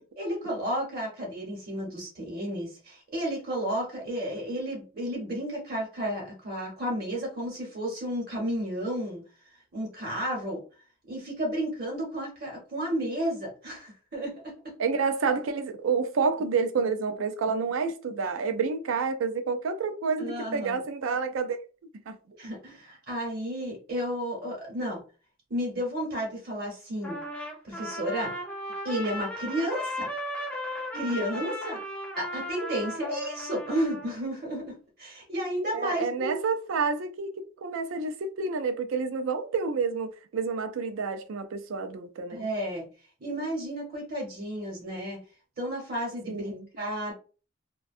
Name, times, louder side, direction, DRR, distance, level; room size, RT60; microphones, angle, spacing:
voice 1, 0.2-9.2 9.7-10.6 11.1-14.7 20.2-20.8 22.4-25.0 25.5-27.2 27.6-28.3 28.8-30.1 30.9-31.8 32.2-36.5 42.3-42.8 43.2-45.2 45.6-47.1, equal, 45° right, 0.9 m, -32 dB
voice 2, 14.8-21.6 22.1-22.2 30.9-31.0 35.7-42.4 46.3-46.7, right 5 dB, 75° right, 0.4 m, -29 dB
Trumpet, 27.0-34.2, left 1 dB, 5° left, 0.4 m, -36 dB
2.6 x 2.2 x 2.4 m
head